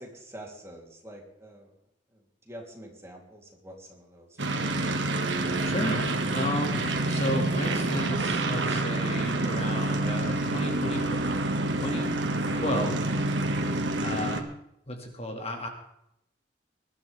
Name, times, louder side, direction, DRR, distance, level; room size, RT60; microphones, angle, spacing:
voice 1, 0.0-1.7 2.5-4.9, right 1 dB, 15° right, -1 dB, 3.2 m, -46 dB
sound 1, 4.4-14.4, right 2 dB, 85° right, 1.8 m, -27 dB
voice 2, 5.6-12.1 12.5-13.1 14.0-14.5 14.9-15.7, left 1 dB, 35° left, 3 dB, 2.2 m, -33 dB
21.5 x 12.5 x 3.5 m, 0.78 s
head